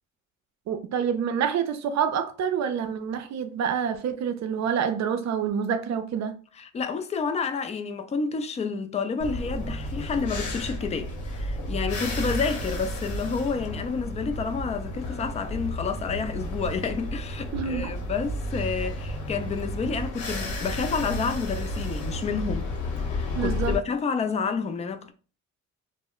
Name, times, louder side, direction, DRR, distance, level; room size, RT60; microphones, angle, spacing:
voice 1, 0.7-6.4 17.5-17.9 23.3-23.8, right 7 dB, 65° right, 0.5 m, -27 dB
voice 2, 6.6-22.7 23.1-25.1, left 5 dB, 20° left, 0.4 m, -29 dB
sound 1, 9.2-23.8, left 1 dB, 75° left, 0.9 m, -32 dB
2.1 x 2.1 x 3.7 m
cardioid pair, 90°, 30 cm